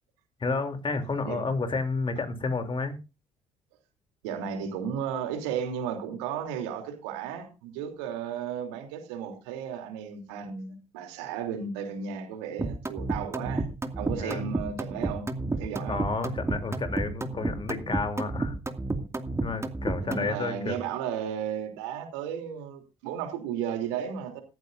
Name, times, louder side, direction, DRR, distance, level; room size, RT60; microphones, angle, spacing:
voice 1, 0.4-3.0 14.2-14.4 15.9-18.5 19.4-20.8, left 3 dB, 35° left, 3.2 m, -31 dB
voice 2, 4.2-13.6 13.9-16.0 20.0-24.4, right 8 dB, 75° right, 3.2 m, -34 dB
sound 1, 12.6-20.3, right 2 dB, 20° right, 2.3 m, -31 dB
16.5 x 14.5 x 2.6 m
figure-of-eight pair, 50°, 15 cm